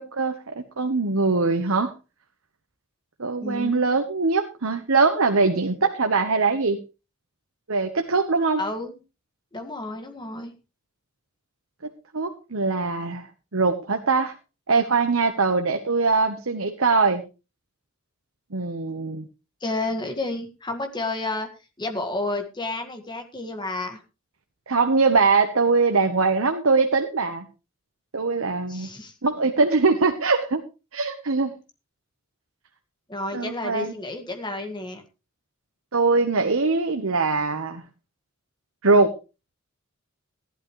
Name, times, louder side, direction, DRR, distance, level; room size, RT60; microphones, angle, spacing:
voice 1, 0.0-1.9 3.2-6.8 7.7-8.6 12.1-14.3 14.7-17.2 18.5-19.2 24.7-27.4 28.1-28.9 29.2-30.6 30.9-31.5 33.3-33.9 35.9-37.8 38.8-39.1, right 4 dB, 85° right, 6 dB, 1.2 m, -22 dB
voice 2, 3.4-3.9 8.6-9.0 9.5-10.5 19.6-21.5 21.8-24.0 28.7-29.1 33.1-35.0, left 2 dB, 20° left, 5 dB, 1.8 m, -31 dB
15.0 x 11.5 x 3.2 m, 0.30 s
head